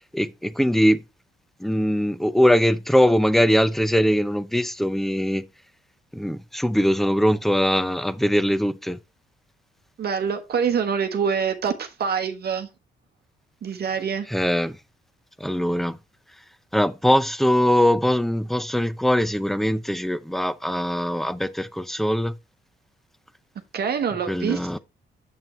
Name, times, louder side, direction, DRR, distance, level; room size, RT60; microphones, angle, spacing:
voice 1, 0.1-1.0 1.6-5.4 6.1-9.0 14.3-14.8 15.4-16.0 16.7-22.4 24.3-24.8, equal, ahead, 0.5 m, -21 dB
voice 2, 10.0-12.7 13.6-14.3 23.7-24.8, right 6 dB, 55° right, 1.0 m, -25 dB
7.4 x 6.8 x 3.1 m
cardioid pair, 90°, 20 cm